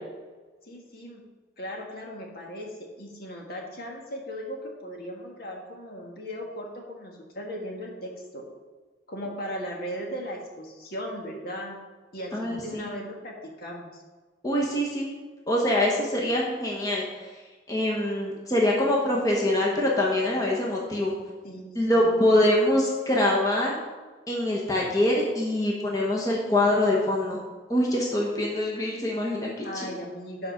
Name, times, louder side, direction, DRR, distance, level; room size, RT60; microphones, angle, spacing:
voice 1, 0.6-1.2 1.6-8.4 9.1-11.8 12.1-14.0 21.4-22.1 29.6-30.5, equal, 55° left, -1 dB, 1.7 m, -37 dB
voice 2, 12.3-12.9 14.4-15.1 15.5-17.3 17.7-21.1 21.7-23.7 24.3-27.4 27.7-29.9, left 1 dB, 20° left, -3 dB, 1.3 m, -24 dB
9.0 x 5.1 x 6.0 m, 1.3 s
head